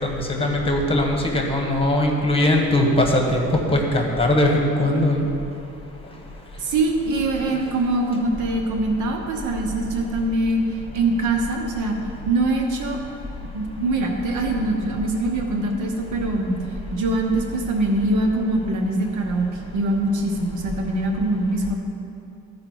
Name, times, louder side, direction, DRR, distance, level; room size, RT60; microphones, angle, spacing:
voice 1, 0.0-5.3, left 1 dB, 20° left, 1 dB, 1.5 m, -20 dB
voice 2, 6.6-10.6 10.9-12.0 12.3-13.0 13.5-16.6 16.9-21.7, right 2 dB, 85° right, 2 dB, 1.2 m, -23 dB
14.0 x 4.8 x 4.6 m, 2.5 s
cardioid pair, 90°, 30 cm